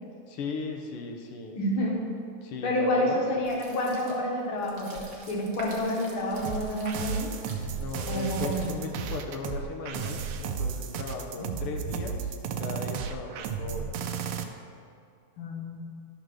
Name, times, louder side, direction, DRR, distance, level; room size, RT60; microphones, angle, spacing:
voice 1, 0.3-1.6 2.4-3.5 7.8-14.0, left 3 dB, 90° left, 2 dB, 1.2 m, -37 dB
voice 2, 1.5-2.1 2.6-7.4 8.0-8.8 11.4-11.5 15.4-15.9, left 1 dB, 55° left, -2 dB, 1.8 m, -29 dB
sound 1, 3.4-9.1, right 2 dB, 60° right, 1.0 m, -46 dB
sound 2, 6.4-14.4, right 6 dB, 80° right, 1.6 m, -33 dB
12.0 x 4.0 x 6.2 m, 2.5 s
omnidirectional pair, 3.5 m